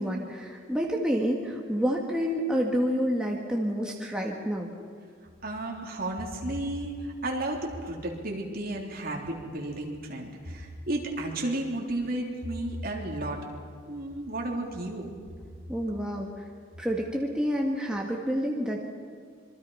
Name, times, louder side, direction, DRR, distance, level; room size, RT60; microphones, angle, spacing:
voice 1, 0.0-4.7 15.7-16.5 16.8-18.8, equal, 5° right, -1 dB, 1.8 m, -28 dB
voice 2, 5.4-6.9 7.2-13.4 13.9-15.1, right 1 dB, 45° right, 0 dB, 3.5 m, -33 dB
26.5 x 24.0 x 5.7 m, 2.1 s
head